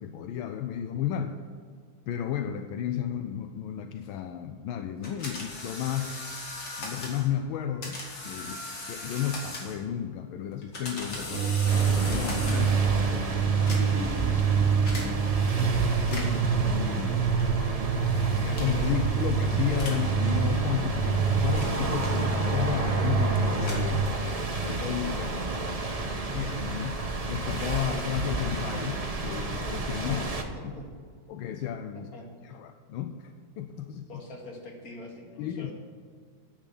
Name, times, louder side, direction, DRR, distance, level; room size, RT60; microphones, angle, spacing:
voice 1, 0.0-1.4 2.1-6.5 6.8-11.6 12.1-12.7 13.7-17.4 17.8-24.1 24.6-25.5 26.3-27.0 27.3-30.3 30.6-30.7 31.3-32.1 32.4-34.2 35.4-35.7, left 9 dB, 80° left, 8 dB, 1.4 m, -33 dB
sound 1, 5.0-7.3 7.8-9.9 10.5-12.9 13.5-14.1 14.9-15.1 16.0-16.5 17.4-17.7 18.5-18.9 19.7-20.1 20.9-22.6 23.4-24.4, left 2 dB, 65° left, 3.0 m, -39 dB
sound 2, 11.3-24.1, right 6 dB, 75° right, 1.3 m, -27 dB
sound 3, 11.7-30.4, right 3 dB, 30° right, 0.7 m, -31 dB
voice 2, 12.5-13.1 30.1-30.9 31.9-32.3 34.1-35.7, left 1 dB, 45° left, 0 dB, 2.4 m, -44 dB
10.0 x 8.2 x 7.0 m, 2.1 s
omnidirectional pair, 2.3 m